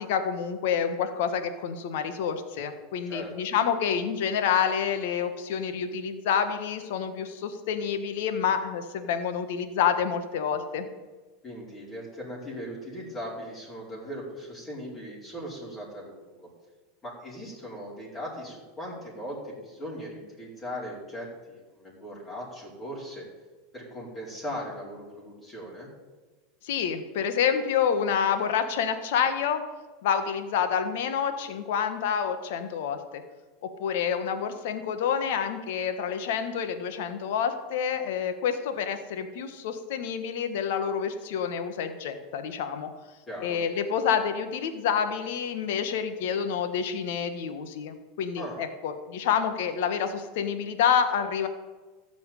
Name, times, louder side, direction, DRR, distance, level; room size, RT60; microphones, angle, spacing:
voice 1, 0.0-10.9 26.6-29.6 30.0-33.2 33.6-42.9 43.4-51.5, left 7 dB, 70° left, 9 dB, 1.5 m, -28 dB
voice 2, 11.4-16.5 17.0-23.3 23.7-25.9 43.3-43.6 48.4-48.6, equal, 25° left, -5 dB, 5.1 m, -39 dB
14.0 x 6.2 x 9.2 m, 1.3 s
hypercardioid pair, 100°, 0 cm